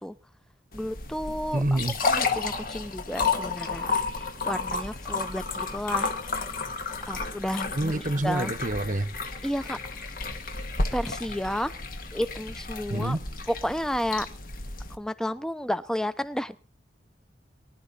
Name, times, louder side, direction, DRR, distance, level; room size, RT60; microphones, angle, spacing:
sound 1, 0.7-15.0, left 4 dB, 55° left, 1.8 m, -32 dB
voice 1, 0.7-4.0 4.5-6.4 7.1-7.9 8.2-8.5 9.4-9.8 10.9-11.7 12.1-13.2 13.5-14.3 14.9-16.6, equal, 5° left, 0.8 m, -31 dB
voice 2, 1.5-2.0 7.7-9.1 12.9-13.2, right 1 dB, 50° right, 1.0 m, -27 dB
24.0 x 11.5 x 4.1 m
head